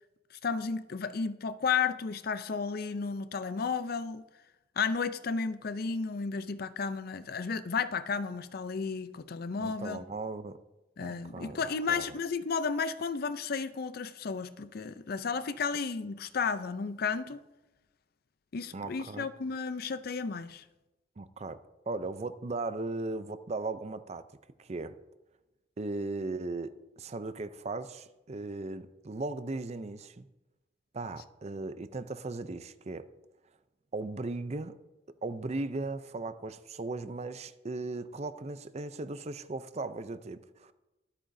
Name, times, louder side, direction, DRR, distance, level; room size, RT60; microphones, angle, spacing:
voice 1, 0.4-4.3 4.8-10.0 11.0-17.4 18.5-20.6, left 5 dB, 55° left, 0.5 m, -33 dB
voice 2, 9.6-10.6 11.0-11.6 11.9-12.1 18.7-19.3 21.2-21.6 21.9-24.2 24.6-25.0 25.8-30.3 30.9-33.1 33.9-34.8 35.2-40.7, right 3 dB, 35° right, 0.5 m, -37 dB
23.0 x 8.6 x 2.7 m
head